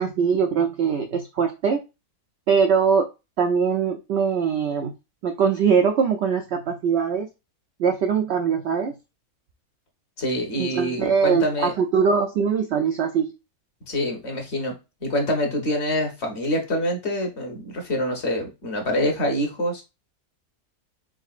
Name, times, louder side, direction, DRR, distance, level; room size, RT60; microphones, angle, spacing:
voice 1, 0.0-1.8 2.5-3.1 3.4-4.9 5.2-7.3 7.8-8.9 10.6-13.3, right 6 dB, 70° right, 0.6 m, -22 dB
voice 2, 10.2-11.7 13.9-14.7 15.0-19.8, equal, 50° left, 1.2 m, -26 dB
4.0 x 3.8 x 2.4 m
omnidirectional pair, 1.6 m